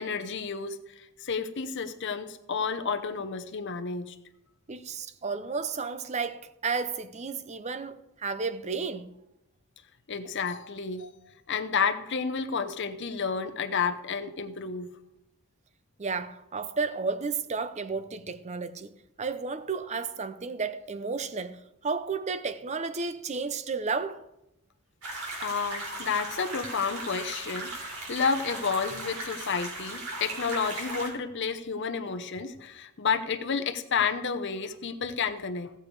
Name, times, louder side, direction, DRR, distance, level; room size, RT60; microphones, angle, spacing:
voice 1, 0.0-4.1 10.1-11.1 11.5-14.9 25.4-35.7, left 5 dB, 55° left, 0.8 m, -31 dB
voice 2, 4.7-9.1 16.0-18.9 19.2-24.2, right 4 dB, 30° right, 0.6 m, -32 dB
sound 1, 25.0-31.1, right 2 dB, 80° right, 3.8 m, -37 dB
16.5 x 6.8 x 4.8 m
head